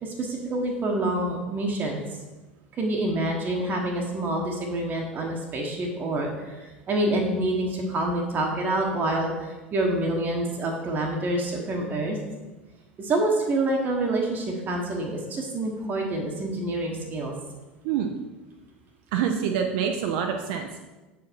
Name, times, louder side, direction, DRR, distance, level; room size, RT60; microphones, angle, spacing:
voice 1, 0.0-2.0 2.8-12.2 13.0-17.3, right 1 dB, 30° right, 0 dB, 1.0 m, -27 dB
voice 2, 19.1-20.8, right 8 dB, 55° right, 4 dB, 0.5 m, -26 dB
7.0 x 4.8 x 4.4 m, 1.1 s
figure-of-eight pair, 75°, 6 cm